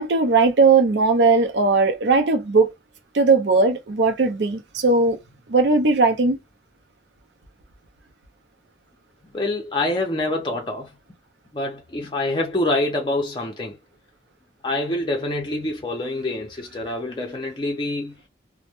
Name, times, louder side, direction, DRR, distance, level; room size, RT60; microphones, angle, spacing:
voice 1, 0.0-2.7 3.1-5.2 5.5-6.4, right 3 dB, 75° right, 0.6 m, -18 dB
voice 2, 9.3-10.9 11.5-13.8 14.6-18.2, left 2 dB, 25° left, 0.4 m, -26 dB
2.1 x 2.0 x 2.9 m
head